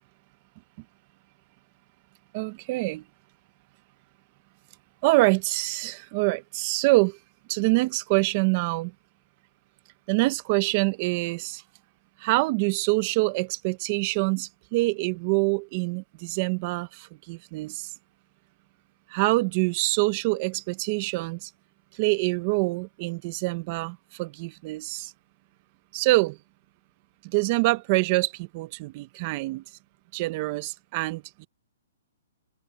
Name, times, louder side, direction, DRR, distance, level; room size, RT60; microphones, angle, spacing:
voice 1, 2.3-3.0 5.0-7.2 7.5-8.9 10.1-11.6 12.2-17.9 19.1-21.5 21.9-25.1 25.9-26.4 27.2-29.6 30.1-31.5, right 23 dB, 35° right, 0.9 m, -25 dB
open air
hypercardioid pair, 160°, 0 cm